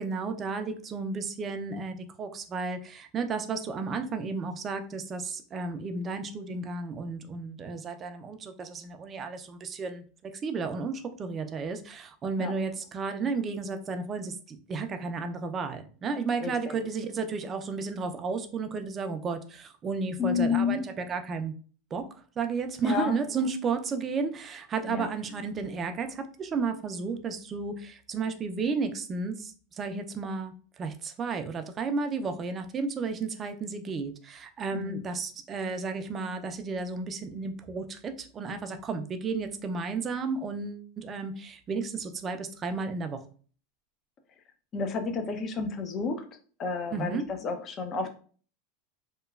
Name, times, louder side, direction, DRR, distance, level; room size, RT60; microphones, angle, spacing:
voice 1, 0.0-21.5 21.9-22.0 22.4-43.2 46.9-47.2, right 4 dB, 30° right, 8 dB, 0.4 m, -33 dB
voice 2, 16.4-16.8 20.2-20.8 22.8-23.2 24.9-25.1 34.7-35.0 44.7-46.2 46.6-48.1, left 5 dB, 35° left, 7 dB, 0.5 m, -30 dB
2.9 x 2.2 x 2.3 m, 0.41 s
hypercardioid pair, 115°, 0 cm